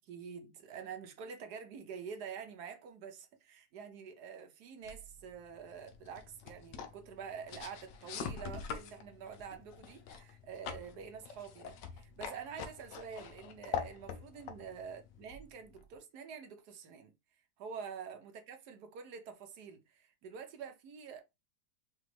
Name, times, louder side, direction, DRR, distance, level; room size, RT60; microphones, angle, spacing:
voice 1, 0.1-21.2, right 6 dB, 60° right, 1.2 m, -47 dB
sound 1, 4.8-16.0, left 6 dB, 70° left, 1.2 m, -45 dB
5.0 x 2.6 x 3.1 m
omnidirectional pair, 2.2 m